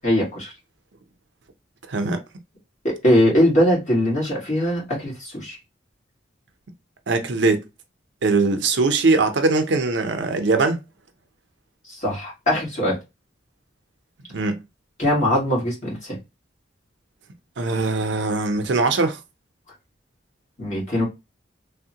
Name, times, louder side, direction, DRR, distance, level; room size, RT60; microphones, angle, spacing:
voice 1, 0.0-0.5 2.8-5.6 11.9-13.0 15.0-16.2 20.6-21.0, equal, 40° left, 1.6 m, -21 dB
voice 2, 1.9-2.2 7.1-7.6 8.2-10.8 14.3-14.6 17.6-19.2, right 3 dB, 65° right, 0.6 m, -21 dB
3.4 x 2.1 x 2.7 m
head